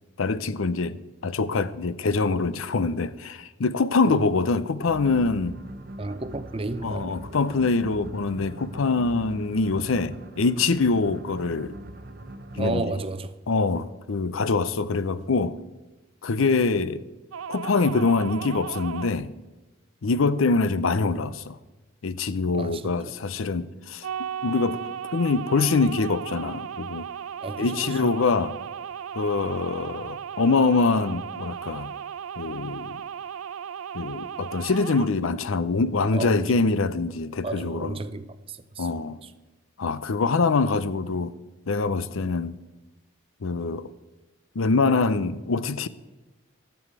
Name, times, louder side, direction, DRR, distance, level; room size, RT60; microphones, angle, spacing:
voice 1, 0.2-5.6 6.8-11.7 12.6-12.9 13.5-15.5 16.2-17.0 17.5-19.3 20.0-21.6 22.0-24.1 24.4-24.8 25.1-27.1 27.6-28.5 29.1-31.9 32.4-33.0 33.9-38.0 38.8-39.2 39.8-41.3 41.7-42.6 43.4-43.9 44.6-45.9, left 4 dB, 80° left, 0.6 m, -24 dB
sound 1, 4.8-13.1, right 1 dB, 45° right, 0.9 m, -41 dB
voice 2, 6.0-7.2 9.1-9.2 12.5-13.4 22.5-23.2 27.4-28.2 36.1-36.6 37.4-38.9 39.2-39.3 42.2-42.3, right 2 dB, 25° right, 0.6 m, -33 dB
sound 2, 17.3-19.1 24.0-35.1, right 8 dB, 90° right, 0.5 m, -36 dB
13.5 x 7.0 x 8.2 m
head